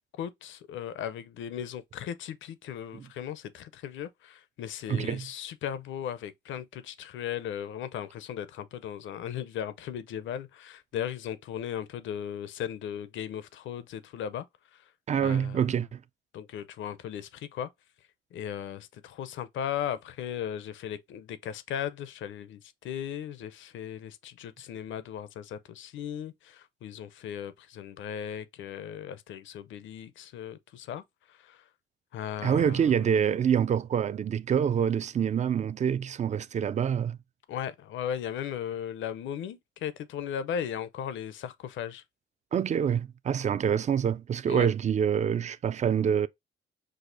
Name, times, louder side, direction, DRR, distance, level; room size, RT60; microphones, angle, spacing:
voice 1, 0.2-14.4 14.7-14.8 15.2-15.7 16.3-17.7 18.3-31.6 32.1-33.0 37.5-42.0 44.5-44.7, left 9 dB, 75° left, 0.6 m, -37 dB
voice 2, 4.9-5.3 15.1-16.0 32.4-37.2 42.5-46.3, right 8 dB, 35° right, 0.4 m, -26 dB
6.3 x 2.5 x 2.6 m
cardioid pair, 90°, 20 cm